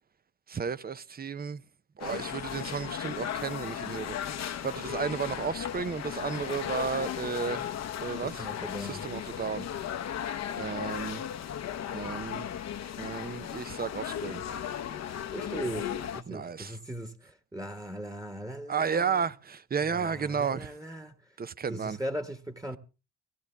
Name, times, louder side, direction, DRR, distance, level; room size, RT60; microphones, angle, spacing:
voice 1, 0.5-1.6 2.0-7.7 8.0-8.5 8.8-9.7 10.6-11.2 11.9-12.5 13.0-14.4 16.3-16.8 18.7-20.7 21.4-22.0, right 6 dB, 30° right, 0.7 m, -33 dB
sound 1, 2.0-16.2, left 9 dB, 60° left, 1.0 m, -36 dB
voice 2, 8.2-9.1 15.3-19.3 19.8-21.3 21.7-22.8, right 1 dB, 10° right, 1.5 m, -39 dB
17.0 x 15.5 x 3.4 m
cardioid pair, 90°, 30 cm